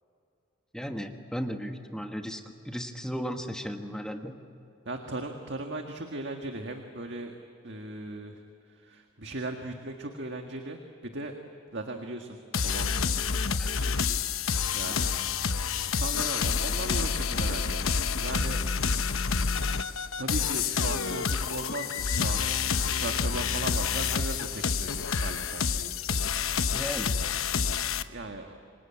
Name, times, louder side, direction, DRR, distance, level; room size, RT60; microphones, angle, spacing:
voice 1, 0.7-4.4 13.5-13.7 14.9-15.0 26.7-27.2, equal, 5° left, 4 dB, 1.4 m, -36 dB
voice 2, 4.9-7.4 7.6-11.4 11.7-12.9 13.8-14.2 14.7-15.1 16.0-17.8 18.2-18.6 20.2-26.0 28.1-28.6, right 2 dB, 55° right, 3 dB, 1.8 m, -38 dB
sound 1, 12.5-28.0, left 6 dB, 80° left, 1.0 m, -28 dB
28.5 x 24.0 x 8.6 m, 2.7 s
head